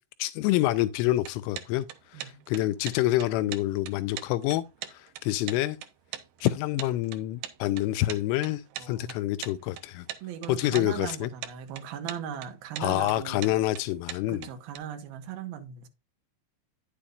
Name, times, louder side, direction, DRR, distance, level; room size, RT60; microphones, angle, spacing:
voice 1, 0.2-1.9 2.1-4.6 4.9-5.8 6.4-10.1 10.5-11.3 12.8-14.5, left 15 dB, 85° left, 3.1 m, -27 dB
sound 1, 1.2-14.8, right 11 dB, 85° right, 2.1 m, -41 dB
voice 2, 8.8-9.2 10.2-13.5 14.3-15.9, right 8 dB, 65° right, 2.6 m, -38 dB
10.0 x 8.3 x 2.5 m
omnidirectional pair, 5.6 m